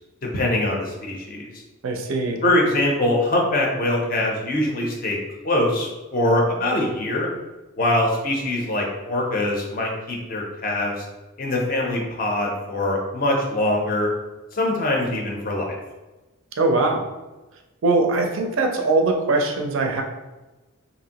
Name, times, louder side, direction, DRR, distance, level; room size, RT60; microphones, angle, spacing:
voice 1, 0.3-1.5 2.4-5.2 5.4-7.3 7.8-11.1 11.4-14.1 14.5-15.8, left 1 dB, 40° left, -1 dB, 0.5 m, -23 dB
voice 2, 1.8-2.4 16.6-17.0 17.8-20.0, right 3 dB, 65° right, 3 dB, 0.4 m, -21 dB
2.8 x 2.5 x 2.8 m, 1.1 s
head